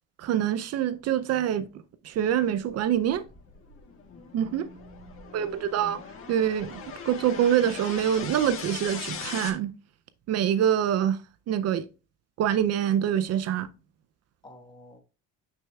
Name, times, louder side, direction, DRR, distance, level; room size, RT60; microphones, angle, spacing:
voice 1, 0.2-1.7 2.0-3.2 4.3-4.7 5.3-6.0 6.3-9.7 10.3-11.2 11.5-11.9 12.4-13.7, right 10 dB, 55° right, 0.5 m, -25 dB
sound 1, 2.6-9.5, left 6 dB, 45° left, 1.6 m, -40 dB
voice 2, 4.4-5.6 14.4-15.0, equal, 15° left, 1.2 m, -50 dB
8.6 x 6.3 x 2.3 m
cardioid pair, 145°, 30 cm